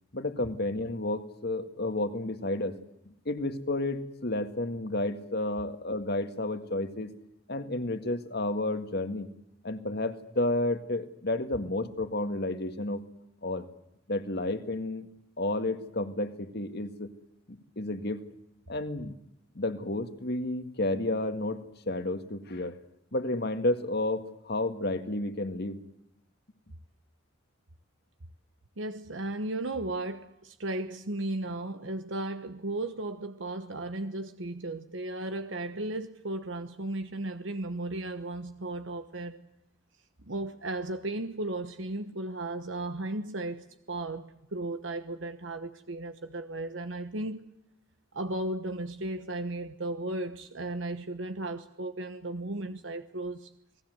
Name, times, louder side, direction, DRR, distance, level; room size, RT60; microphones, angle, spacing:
voice 1, 0.1-2.8 3.3-7.1 7.5-9.3 9.6-13.0 13.4-13.7 14.1-15.1 15.4-17.1 17.5-18.2 18.7-19.1 19.5-22.8 23.1-25.8, left 2 dB, 55° left, 2.0 m, -31 dB
voice 2, 28.8-39.4 40.3-47.5 48.1-53.5, right 2 dB, 70° right, 1.2 m, -35 dB
29.0 x 19.5 x 8.0 m
head